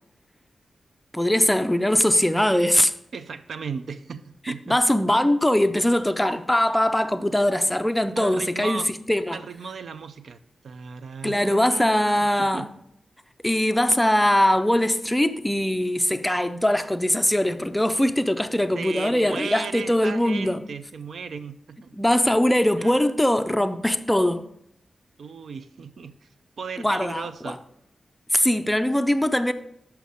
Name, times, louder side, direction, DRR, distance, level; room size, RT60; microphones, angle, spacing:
voice 1, 1.1-2.9 4.7-9.4 11.2-12.7 13.4-20.6 22.0-24.5 26.8-27.6 28.3-29.5, left 1 dB, 5° left, 0.4 m, -21 dB
voice 2, 3.1-4.8 8.2-8.9 9.3-10.4 10.6-12.7 18.7-22.0 22.5-22.9 25.2-26.3 26.6-27.6, right 5 dB, 70° right, 0.5 m, -36 dB
6.9 x 5.7 x 6.3 m
wide cardioid pair, 170°, 0 cm